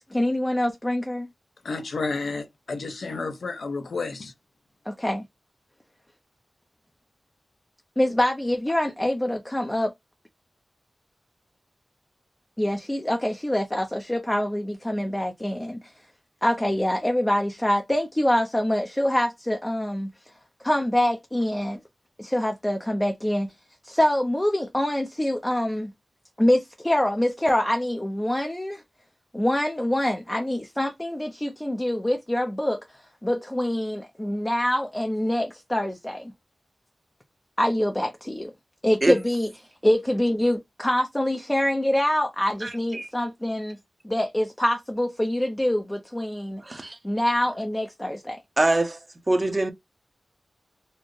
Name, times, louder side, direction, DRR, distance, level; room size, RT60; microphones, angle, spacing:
voice 1, 0.1-1.3 4.9-5.2 8.0-9.9 12.6-15.9 16.4-20.3 20.6-21.8 22.2-23.5 23.8-25.9 26.4-28.8 29.3-36.3 37.6-38.5 38.8-39.5 39.8-43.8 44.0-46.6 47.0-48.4, left 1 dB, 15° left, 0.5 m, -25 dB
voice 2, 1.6-4.3, left 3 dB, 80° left, 0.7 m, -31 dB
voice 3, 42.6-43.1 46.6-47.0 48.6-49.0 49.3-49.7, right 2 dB, 30° right, 0.7 m, -23 dB
4.2 x 2.1 x 3.1 m
wide cardioid pair, 95°, 0 cm